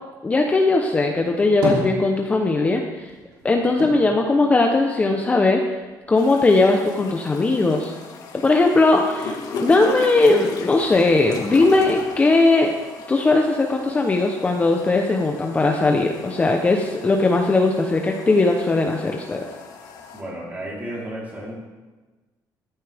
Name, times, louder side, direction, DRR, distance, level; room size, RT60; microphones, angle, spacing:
voice 1, 0.2-3.1 3.4-5.8 6.1-7.9 8.4-12.7 13.1-19.5, left 3 dB, 20° left, 2 dB, 0.8 m, -19 dB
sound 1, 1.2-2.7 3.0-5.4 5.7-6.6, right 1 dB, 80° right, 3.0 m, -31 dB
sound 2, 6.2-20.2, left 4 dB, 60° left, 1.7 m, -37 dB
voice 2, 20.1-21.5, right 1 dB, 20° right, -5 dB, 3.7 m, -32 dB
13.5 x 11.5 x 3.5 m, 1.3 s
cardioid pair, 135°, 7 cm